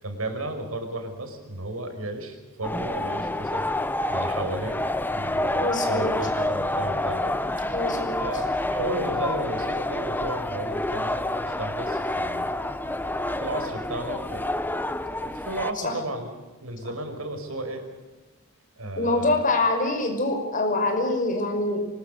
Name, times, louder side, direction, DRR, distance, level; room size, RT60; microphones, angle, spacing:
voice 1, 0.0-3.7 4.1-4.8 5.1-7.9 8.2-12.5 13.4-14.5 15.2-16.3 16.6-17.8 18.8-19.4, right 1 dB, 85° right, 6 dB, 5.3 m, -34 dB
sound 1, 2.6-15.7, left 1 dB, 10° left, 0.9 m, -28 dB
voice 2, 5.5-6.1 7.7-8.2 15.8-15.9 19.0-21.9, left 2 dB, 40° left, 5 dB, 5.7 m, -25 dB
24.5 x 21.5 x 6.7 m, 1.2 s
head